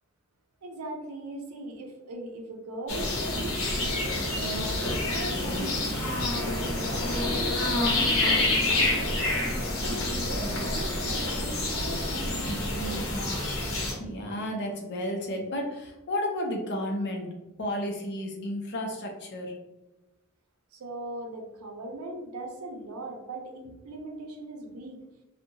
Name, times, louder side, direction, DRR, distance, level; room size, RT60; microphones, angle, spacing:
voice 1, 0.6-5.9 6.3-7.6 8.0-9.2 9.8-13.2 20.7-25.0, right 2 dB, 90° right, 2 dB, 0.5 m, -39 dB
sound 1, 2.9-13.9, left 2 dB, 75° left, 0.8 m, -28 dB
voice 2, 14.0-17.3 17.6-19.5, left 1 dB, 55° left, 2 dB, 0.5 m, -32 dB
2.7 x 2.1 x 2.6 m, 1.0 s
head